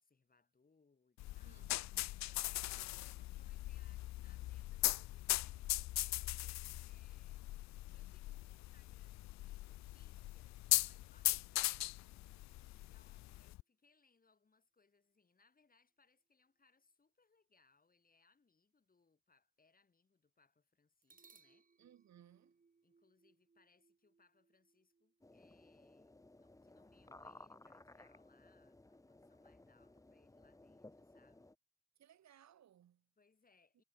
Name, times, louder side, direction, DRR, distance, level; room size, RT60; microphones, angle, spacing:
voice 1, 0.0-1.7 2.2-7.4 7.9-12.0 12.6-21.7 22.8-31.5 33.2-33.8, left 4 dB, 30° left, 6.3 m, -74 dB
sound 1, 1.2-13.6, left 17 dB, 65° left, 0.4 m, -40 dB
voice 2, 1.4-2.0 21.8-22.6 32.0-33.1, right 10 dB, 65° right, 3.1 m, -64 dB
sound 2, 9.9-13.4 21.0-28.9, right 4 dB, 30° right, 2.8 m, -74 dB
sound 3, 25.2-31.5, left 2 dB, 10° left, 1.6 m, -59 dB
cardioid pair, 90°, 30 cm